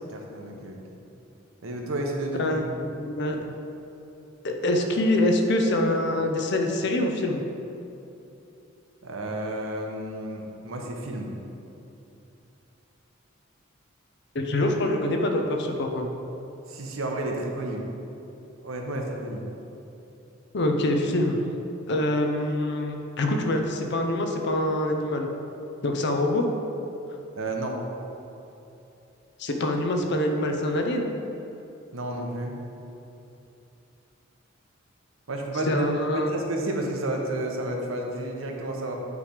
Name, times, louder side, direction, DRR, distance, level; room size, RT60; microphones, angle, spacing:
voice 1, 0.0-1.0 1.6-2.5 9.0-11.3 16.7-17.8 18.6-19.5 27.3-27.8 31.9-32.5 35.3-35.9 36.1-38.9, right 1 dB, 80° right, 1 dB, 0.9 m, -31 dB
voice 2, 2.4-3.4 4.4-7.4 14.3-16.1 20.5-21.4 21.9-25.3 25.8-26.5 29.4-31.1 35.7-36.3, left 1 dB, 55° left, 3 dB, 0.6 m, -25 dB
8.3 x 3.3 x 5.0 m, 2.9 s
head